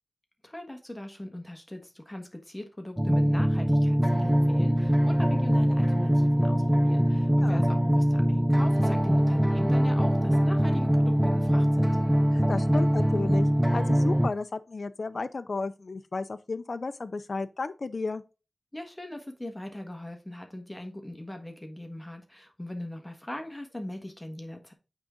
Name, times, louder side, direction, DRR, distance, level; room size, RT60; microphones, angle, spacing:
voice 1, 0.4-11.9 18.7-24.7, left 1 dB, 15° left, 1.4 m, -40 dB
sound 1, 3.0-14.3, equal, 10° right, 0.5 m, -23 dB
voice 2, 12.3-18.2, left 3 dB, 60° left, 0.4 m, -33 dB
8.8 x 3.7 x 3.7 m
wide cardioid pair, 55°, 0 cm